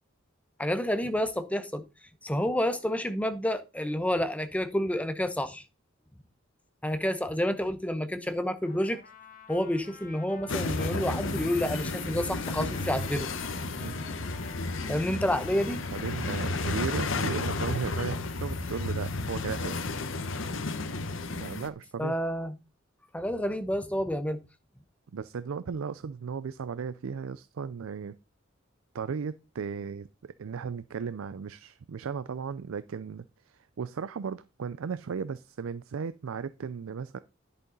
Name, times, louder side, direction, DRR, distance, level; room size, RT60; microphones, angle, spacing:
voice 1, 0.6-1.8 2.2-5.6 6.8-9.0 9.5-13.3 14.9-15.8 22.0-22.5 23.1-24.4, equal, 5° left, 0.9 m, -29 dB
Trumpet, 8.6-17.0, left 5 dB, 45° left, 1.7 m, -51 dB
sound 1, 10.5-21.7, left 3 dB, 70° left, 1.0 m, -32 dB
voice 2, 15.6-19.8 21.4-22.2 25.1-28.2 28.9-30.1 30.4-37.2, right 6 dB, 85° right, 0.4 m, -36 dB
10.5 x 6.8 x 3.9 m
head